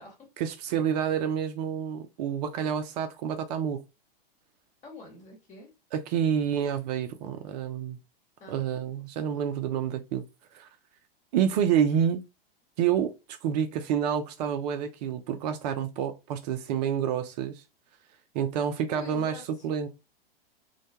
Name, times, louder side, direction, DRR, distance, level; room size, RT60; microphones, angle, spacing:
voice 1, 0.4-3.8 5.9-8.0 8.5-10.2 10.5-10.7 11.3-12.2 12.8-17.6 18.3-19.9, right 8 dB, 45° right, 0.4 m, -28 dB
voice 2, 4.8-5.7 8.4-8.9 9.3-9.4 18.9-19.7, left 3 dB, 25° left, 1.1 m, -47 dB
2.2 x 2.1 x 2.8 m
hypercardioid pair, 110°, 30 cm